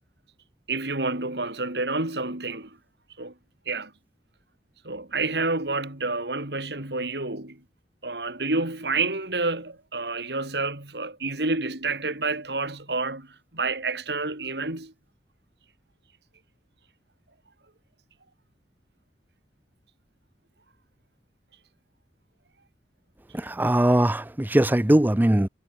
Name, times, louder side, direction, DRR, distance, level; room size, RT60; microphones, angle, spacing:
voice 1, 0.7-2.7 3.2-3.3 3.7-3.9 4.8-7.6 8.0-13.3 13.5-14.9, right 3 dB, 70° right, 3.9 m, -29 dB
voice 2, 23.5-25.5, right 1 dB, 10° right, 0.6 m, -20 dB
head